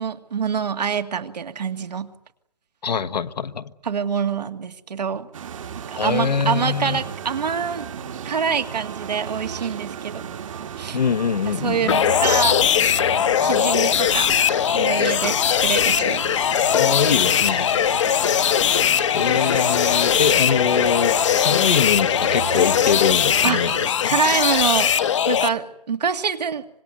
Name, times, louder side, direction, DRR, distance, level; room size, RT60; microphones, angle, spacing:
voice 1, 0.0-2.1 3.8-5.3 5.9-7.9 8.3-10.2 10.8-11.0 11.5-12.6 13.4-14.4 14.7-16.2 23.4-23.6 24.1-24.9 25.3-26.6, right 6 dB, 80° right, 2.2 m, -25 dB
voice 2, 2.8-3.7 6.0-7.0 10.9-12.0 16.7-17.8 19.1-23.8 24.0-24.2, left 6 dB, 85° left, 1.4 m, -23 dB
sound 1, 5.3-23.9, right 8 dB, 50° right, 1.8 m, -34 dB
sound 2, 11.9-25.5, left 9 dB, 50° left, 1.0 m, -20 dB
25.5 x 21.0 x 9.4 m
hypercardioid pair, 165°, 21 cm